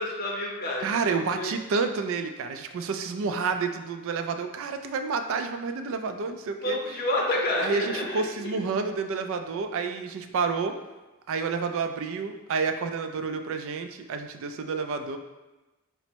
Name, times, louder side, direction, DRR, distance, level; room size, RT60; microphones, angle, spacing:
voice 1, 0.0-1.5 6.6-8.6, left 1 dB, 45° left, -1 dB, 0.6 m, -29 dB
voice 2, 0.8-6.8 7.6-10.7 11.3-15.2, right 4 dB, 60° right, 7 dB, 0.3 m, -29 dB
4.1 x 2.0 x 4.4 m, 1.1 s
head